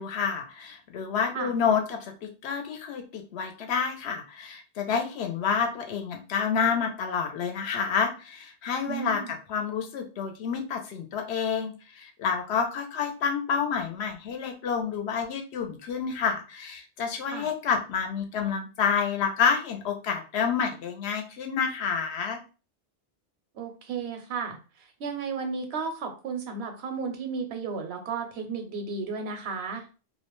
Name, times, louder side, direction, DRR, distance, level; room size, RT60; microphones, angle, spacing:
voice 1, 0.0-9.2 9.5-22.4, left 6 dB, 80° left, 4 dB, 0.9 m, -29 dB
voice 2, 8.8-9.3 17.3-17.5 23.5-29.9, right 5 dB, 80° right, 5 dB, 0.9 m, -34 dB
2.4 x 2.1 x 3.0 m, 0.34 s
omnidirectional pair, 1.1 m